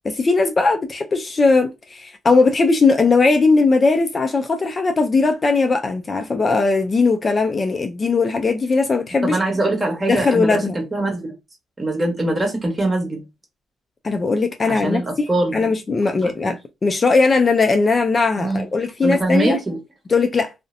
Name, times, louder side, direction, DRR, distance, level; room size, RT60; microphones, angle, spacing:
voice 1, 0.0-9.4 10.1-10.8 14.0-15.3 15.5-19.6 20.1-20.5, left 4 dB, 35° left, 0.4 m, -18 dB
voice 2, 9.2-11.3 11.8-13.2 14.7-15.6 16.2-16.5 18.4-18.6 19.0-19.8, right 2 dB, 25° right, 1.1 m, -22 dB
2.6 x 2.0 x 2.5 m
cardioid pair, 90°, 0 cm